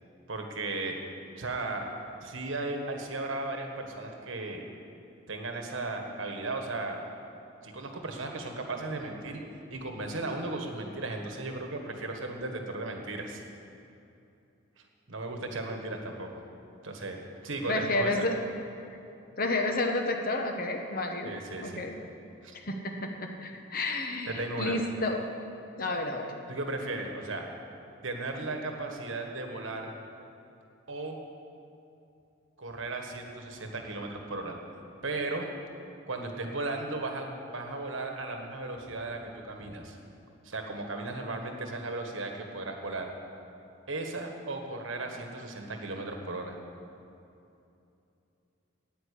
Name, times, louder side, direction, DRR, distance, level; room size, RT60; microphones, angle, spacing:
voice 1, 0.3-1.0 1.4-1.9 2.2-4.6 5.3-7.0 7.6-9.4 9.7-13.4 15.1-16.4 16.8-17.2 17.4-18.2 21.2-21.8 22.4-22.5 23.5-23.6 24.3-24.8 26.5-27.5 28.0-29.9 30.9-31.2 32.6-34.6 35.0-35.5 36.1-40.0 40.4-43.1 43.9-46.6, right 2 dB, 70° right, 3 dB, 1.5 m, -36 dB
voice 2, 17.7-18.3 19.4-21.3 21.6-21.9 22.5-25.2 25.8-26.3, left 2 dB, 45° left, 3 dB, 1.1 m, -30 dB
9.9 x 9.2 x 8.4 m, 2.7 s
head